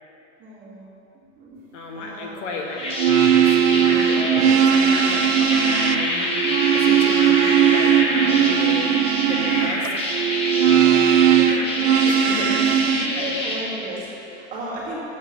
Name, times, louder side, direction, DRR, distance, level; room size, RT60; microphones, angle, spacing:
voice 1, 0.4-0.8 1.1-1.6 1.9-2.5 10.5-11.9 12.4-15.0, right 1 dB, 20° right, -7 dB, 2.3 m, -35 dB
voice 2, 1.7-2.8 3.3-8.9 9.3-10.1 12.0-13.3, left 3 dB, 80° left, 0 dB, 1.7 m, -33 dB
sound 1, 2.5-13.6, left 1 dB, 15° left, 0.9 m, -26 dB
sound 2, 2.9-13.1, right 9 dB, 90° right, 0.6 m, -18 dB
8.0 x 7.4 x 7.0 m, 2.9 s
supercardioid pair, 175°, 35 cm